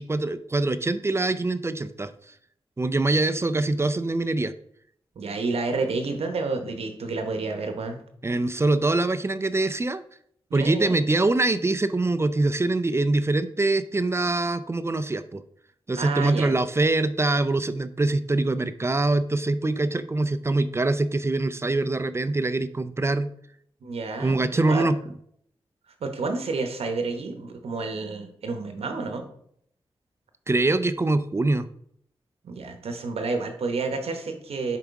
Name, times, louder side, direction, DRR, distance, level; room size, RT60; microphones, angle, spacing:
voice 1, 0.0-2.1 2.8-4.5 8.2-10.0 10.5-15.4 15.9-23.3 24.2-25.0 30.5-31.7, right 2 dB, 25° right, 12 dB, 0.4 m, -24 dB
voice 2, 5.2-8.0 10.5-11.0 16.0-16.6 23.8-24.9 26.0-29.3 32.4-34.8, right 3 dB, 90° right, 6 dB, 0.9 m, -30 dB
7.0 x 4.8 x 3.6 m, 0.69 s
cardioid pair, 65°, 10 cm